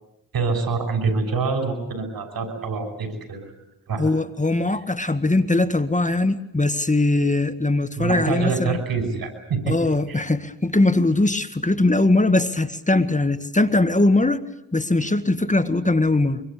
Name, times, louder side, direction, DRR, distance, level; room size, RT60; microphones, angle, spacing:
voice 1, 0.3-3.5 3.9-4.1 8.0-9.8 10.1-10.2, right 4 dB, 75° right, 7 dB, 6.2 m, -25 dB
voice 2, 4.0-8.8 9.7-14.4 14.7-16.4, left 2 dB, 20° left, 11 dB, 1.8 m, -20 dB
24.5 x 23.5 x 8.5 m, 0.87 s
supercardioid pair, 45°, 36 cm